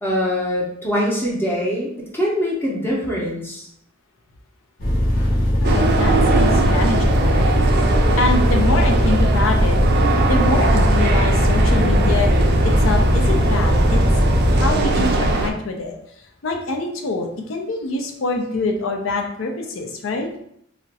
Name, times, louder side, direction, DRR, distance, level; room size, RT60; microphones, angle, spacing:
voice 1, 0.0-3.7, equal, 10° left, -4 dB, 0.6 m, -23 dB
sound 1, 4.8-14.7, equal, 50° left, 0.8 m, -19 dB
voice 2, 5.6-7.5 8.2-9.8 10.3-12.3 12.6-14.0 14.6-15.9 16.4-20.3, left 2 dB, 80° left, 3 dB, 0.5 m, -25 dB
sound 2, 5.6-15.5, right 2 dB, 55° right, 0.3 m, -20 dB
2.4 x 2.1 x 3.9 m, 0.71 s
head